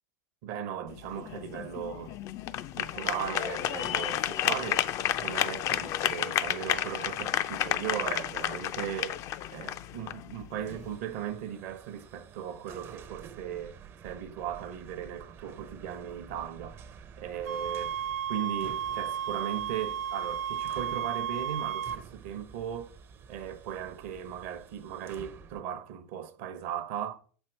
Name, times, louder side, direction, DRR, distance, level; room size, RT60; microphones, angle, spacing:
voice 1, 0.4-2.2 2.8-4.9 5.1-9.2 9.5-13.8 14.0-16.9 17.2-18.0 18.3-22.9 23.3-27.2, right 9 dB, 65° right, 0.8 m, -37 dB
sound 1, 0.9-11.0, left 12 dB, 45° left, 0.4 m, -32 dB
electric hoist, 10.6-25.6, right 7 dB, 30° right, 0.5 m, -50 dB
sound 2, 17.5-22.0, right 9 dB, 90° right, 0.5 m, -33 dB
6.0 x 4.4 x 4.5 m
supercardioid pair, 115°, 8 cm